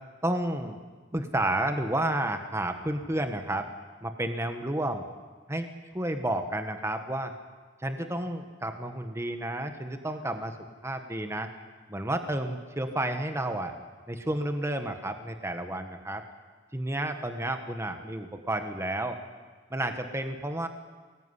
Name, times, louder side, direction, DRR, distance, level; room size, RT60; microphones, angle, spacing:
voice 1, 0.2-0.8 1.1-3.7 4.0-5.0 5.5-7.3 7.8-10.6 10.8-11.5 11.9-13.7 14.1-16.3 16.7-19.2 19.7-20.7, right 1 dB, 15° right, 7 dB, 1.5 m, -31 dB
24.5 x 20.0 x 9.9 m, 1.5 s
head